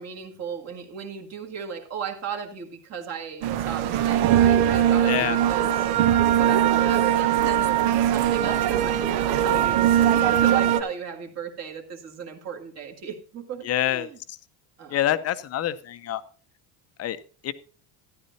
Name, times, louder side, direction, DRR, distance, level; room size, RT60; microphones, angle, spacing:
voice 1, 0.0-5.9 6.4-14.2 14.8-15.0, right 7 dB, 35° right, 2 dB, 2.0 m, -36 dB
sound 1, 3.4-10.8, right 10 dB, 65° right, 0.9 m, -21 dB
voice 2, 5.1-5.4 13.6-14.1 14.9-16.2 17.0-17.2 17.4-17.5, left 12 dB, 35° left, 12 dB, 0.7 m, -26 dB
13.0 x 11.5 x 2.8 m, 0.39 s
cardioid pair, 150°, 42 cm